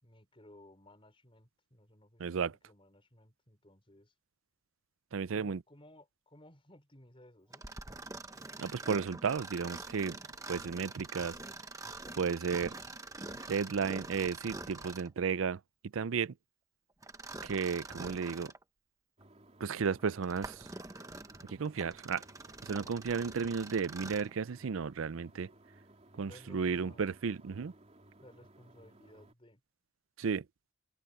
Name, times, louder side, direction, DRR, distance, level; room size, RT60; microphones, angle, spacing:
voice 1, 0.0-4.1 5.3-7.7 26.2-27.3 28.2-29.6, left 1 dB, 25° left, 5.6 m, -58 dB
voice 2, 2.2-2.5 5.1-5.6 8.6-10.2 10.5-11.4 12.2-12.7 13.5-15.6 15.9-16.3 17.4-18.5 19.6-20.7 21.5-22.2 22.6-25.5 26.2-27.7 30.2-30.4, right 5 dB, 75° right, 0.5 m, -33 dB
Mechanisms, 7.5-15.2 17.0-18.6 19.2-19.3 20.0-24.4, right 2 dB, 15° right, 1.2 m, -45 dB
sound 1, 19.2-29.3, right 1 dB, 30° right, 3.3 m, -60 dB
open air
head